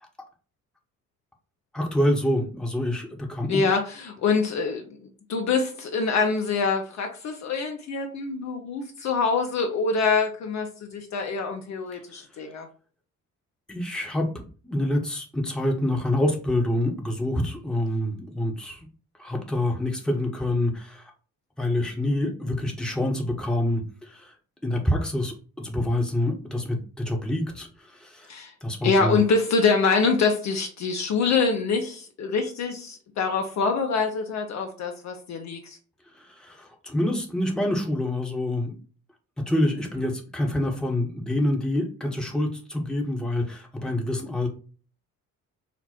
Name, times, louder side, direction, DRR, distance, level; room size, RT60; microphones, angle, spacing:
voice 1, 1.7-3.7 13.7-14.3 14.6-18.9 19.2-21.1 21.6-24.3 24.6-28.3 28.6-29.2 36.1-38.8 39.5-44.5, left 1 dB, ahead, 1 dB, 0.8 m, -26 dB
voice 2, 3.5-5.0 5.3-12.7 28.3-28.5 28.8-35.8, left 4 dB, 40° left, 4 dB, 0.7 m, -25 dB
4.1 x 2.0 x 4.1 m, 0.38 s
figure-of-eight pair, 45°, 43 cm